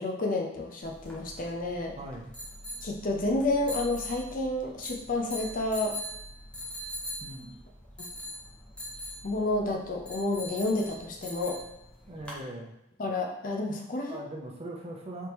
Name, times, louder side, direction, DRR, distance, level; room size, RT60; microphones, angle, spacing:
voice 1, 0.0-1.9 2.8-6.0 8.0-8.1 9.2-11.6 13.0-14.2, left 2 dB, 45° left, 1 dB, 0.5 m, -30 dB
sound 1, 0.8-12.4, left 1 dB, 5° left, 0.7 m, -42 dB
voice 2, 2.0-2.3 7.2-7.5 12.1-12.7 14.1-15.3, right 1 dB, 35° right, -1 dB, 0.6 m, -40 dB
3.4 x 2.8 x 3.0 m, 0.82 s
head